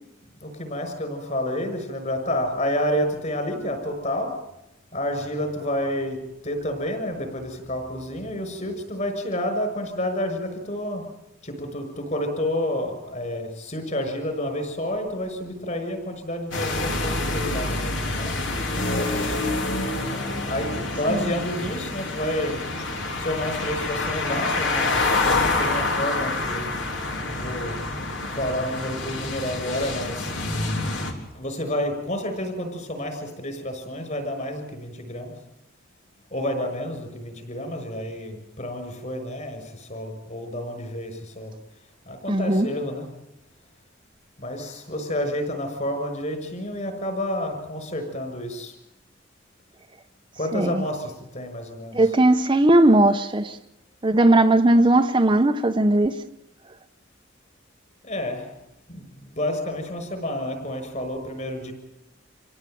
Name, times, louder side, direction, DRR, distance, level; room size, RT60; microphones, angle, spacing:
voice 1, 0.4-4.3 4.9-6.2 6.4-11.0 11.4-18.3 18.9-19.5 20.5-22.6 23.2-25.1 25.6-26.7 27.1-27.8 28.3-30.3 31.3-35.3 36.3-39.6 39.9-41.5 42.1-43.0 44.4-48.7 50.4-51.9 58.1-58.4 58.9-59.0 59.3-61.7, left 1 dB, 40° left, 6.2 m, -29 dB
sound 1, 16.5-31.1, left 2 dB, 75° left, 4.0 m, -27 dB
voice 2, 42.3-42.7 50.5-50.8 51.9-53.6 54.0-56.2, right 1 dB, 25° right, 0.9 m, -18 dB
27.0 x 17.5 x 9.3 m
head